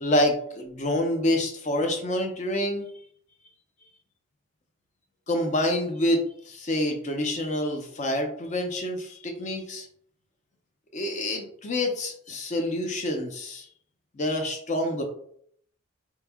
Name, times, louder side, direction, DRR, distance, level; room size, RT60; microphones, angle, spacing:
voice 1, 0.0-2.8 5.3-9.9 10.9-13.7 14.1-15.0, left 1 dB, 35° left, 4 dB, 0.5 m, -27 dB
3.3 x 3.1 x 2.3 m, 0.64 s
head